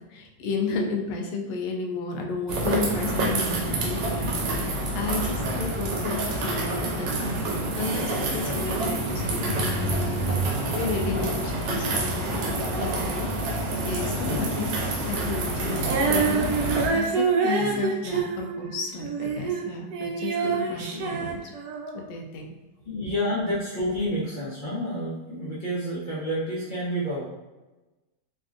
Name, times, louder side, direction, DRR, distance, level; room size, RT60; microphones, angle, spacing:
voice 1, 0.1-10.4 10.7-13.3 13.8-14.7 15.1-16.5 16.9-21.4 21.9-22.6 23.0-23.1, left 3 dB, 80° left, 2 dB, 1.2 m, -32 dB
sound 1, 2.5-16.9, right 1 dB, 90° right, 1.3 m, -27 dB
voice 2, 8.4-8.8 14.2-14.6 17.6-17.8 20.9-21.0 22.8-27.2, equal, 50° left, -9 dB, 0.5 m, -30 dB
Female singing, 15.8-19.7 19.9-22.0, right 5 dB, 70° right, 0.9 m, -26 dB
3.4 x 2.4 x 2.4 m, 1.1 s
omnidirectional pair, 1.9 m